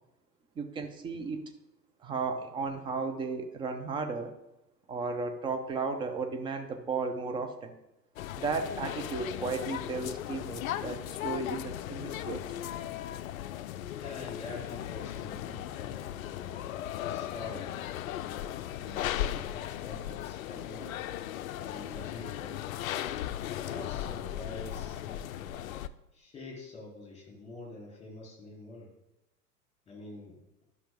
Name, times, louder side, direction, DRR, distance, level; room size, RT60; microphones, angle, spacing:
voice 1, 0.6-1.4 2.0-4.3 4.9-7.7 8.4-12.5, right 4 dB, 10° right, 6 dB, 0.5 m, -34 dB
sound 1, 8.2-25.9, left 12 dB, 55° left, 0.5 m, -37 dB
voice 2, 13.9-16.6 17.1-17.8 18.8-20.9 21.6-22.7 23.5-25.6 26.1-28.9 29.9-30.4, left 2 dB, 15° left, -2 dB, 3.4 m, -46 dB
11.5 x 5.9 x 3.6 m, 0.91 s
figure-of-eight pair, 90°, 50 cm